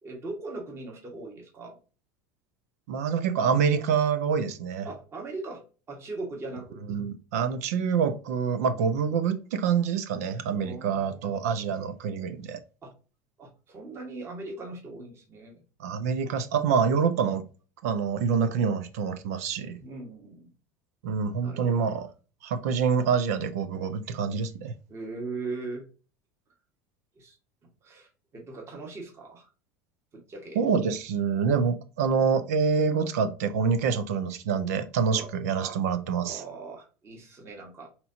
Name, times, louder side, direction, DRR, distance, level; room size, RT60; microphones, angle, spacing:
voice 1, 0.0-1.8 4.8-5.6 5.9-6.8 10.6-11.3 12.8-12.9 13.4-15.6 19.8-20.5 21.4-21.9 24.9-25.8 27.1-27.3 27.8-29.5 30.1-30.6 35.1-35.3 36.2-37.9, right 3 dB, 30° right, 1.7 m, -39 dB
voice 2, 2.9-4.9 6.9-12.6 15.8-17.4 17.8-19.8 21.0-22.1 22.4-24.7 30.5-36.4, right 6 dB, 80° right, 0.6 m, -26 dB
5.4 x 2.9 x 2.8 m
supercardioid pair, 100°, 8 cm